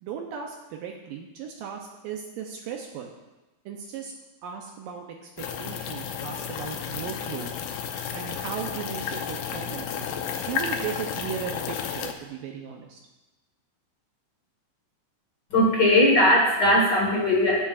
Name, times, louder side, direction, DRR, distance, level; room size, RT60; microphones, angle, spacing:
voice 1, 0.0-3.1 3.7-4.1 4.4-7.5 8.1-10.1 10.5-13.0, right 7 dB, 75° right, 2 dB, 2.2 m, -36 dB
sound 1, 5.4-12.1, left 7 dB, 75° left, 2.4 m, -32 dB
voice 2, 15.5-17.6, left 1 dB, 55° left, -2 dB, 1.2 m, -19 dB
18.5 x 7.3 x 2.4 m, 1.1 s
omnidirectional pair, 4.3 m